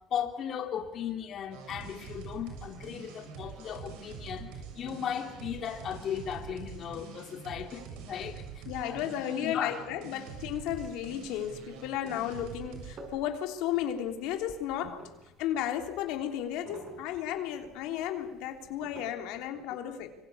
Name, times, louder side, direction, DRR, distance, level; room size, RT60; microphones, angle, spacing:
voice 1, 0.1-8.4 8.9-9.0 9.4-9.7, left 8 dB, 45° left, 2.9 m, -36 dB
sound 1, 1.5-13.0, right 6 dB, 80° right, 7.0 m, -45 dB
voice 2, 8.6-15.0 15.4-20.1, left 10 dB, 75° left, 3.3 m, -34 dB
sound 2, 10.1-19.1, right 3 dB, 40° right, 5.8 m, -53 dB
26.0 x 24.5 x 8.6 m
cardioid pair, 120°, 0 cm